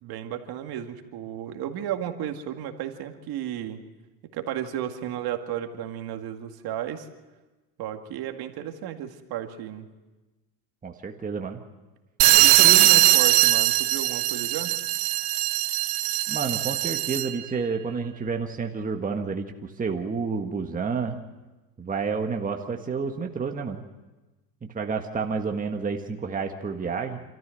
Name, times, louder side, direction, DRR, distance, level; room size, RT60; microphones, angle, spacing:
voice 1, 0.0-3.8 4.3-7.1 7.8-9.9 12.4-14.7, right 10 dB, 55° right, 5 dB, 2.2 m, -33 dB
voice 2, 10.8-11.6 12.6-12.9 16.3-21.2 21.8-23.8 24.6-27.2, right 5 dB, 20° right, 3 dB, 1.6 m, -30 dB
sound 1, 12.2-17.4, right 17 dB, 75° right, 1.5 m, -20 dB
28.0 x 14.0 x 7.8 m, 1.2 s
supercardioid pair, 100°, 45 cm